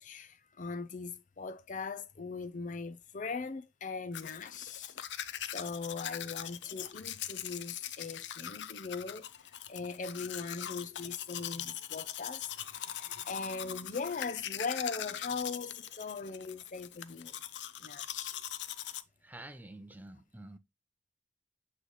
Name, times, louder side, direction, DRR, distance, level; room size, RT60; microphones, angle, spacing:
voice 1, 0.0-9.2 9.7-12.5 12.8-17.3 17.8-18.4, left 4 dB, 45° left, 0.5 m, -40 dB
Domestic sounds home sounds, 4.1-19.0, left 11 dB, 90° left, 0.5 m, -41 dB
voice 2, 19.2-20.6, right 1 dB, 10° right, 0.6 m, -49 dB
8.0 x 3.3 x 3.9 m
head